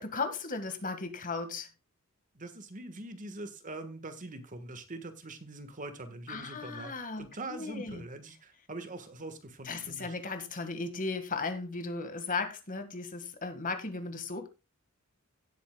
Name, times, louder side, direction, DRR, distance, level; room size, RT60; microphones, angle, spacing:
voice 1, 0.0-1.7 6.3-8.0 9.6-14.5, left 4 dB, 40° left, 8 dB, 1.8 m, -36 dB
voice 2, 2.3-10.2, right 2 dB, 40° right, 9 dB, 1.5 m, -43 dB
17.5 x 8.3 x 2.3 m, 0.27 s
head